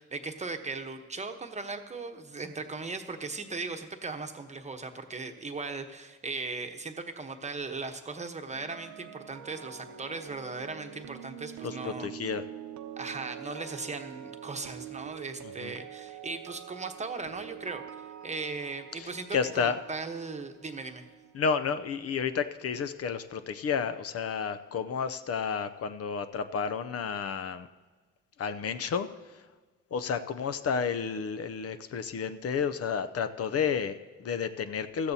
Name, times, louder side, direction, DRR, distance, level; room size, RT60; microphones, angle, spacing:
voice 1, 0.0-12.1 13.0-17.8 18.2-21.1, right 3 dB, 25° right, 6 dB, 1.0 m, -38 dB
sound 1, 8.5-22.6 22.8-23.1, right 10 dB, 75° right, 0.8 m, -46 dB
voice 2, 11.6-12.4 15.6-15.7 19.0-19.8 21.3-27.7 28.4-29.1 29.9-35.1, left 6 dB, 50° left, 11 dB, 0.6 m, -31 dB
16.5 x 13.0 x 2.8 m, 1.3 s
cardioid pair, 90°, 30 cm